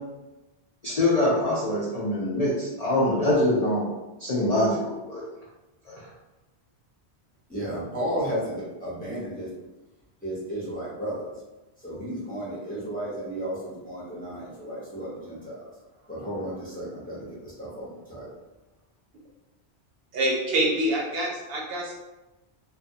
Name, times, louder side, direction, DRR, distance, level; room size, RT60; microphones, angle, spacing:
voice 1, 0.8-3.9 4.2-4.8 5.1-5.2 5.9-6.0, left 1 dB, 50° left, -7 dB, 0.5 m, -24 dB
voice 2, 7.5-9.5 10.2-11.3 11.8-15.7 16.1-18.3, right 1 dB, 10° left, -8 dB, 0.6 m, -33 dB
voice 3, 20.1-21.9, right 1 dB, 65° right, -2 dB, 0.7 m, -26 dB
2.2 x 2.2 x 2.6 m, 1.0 s
omnidirectional pair, 1.1 m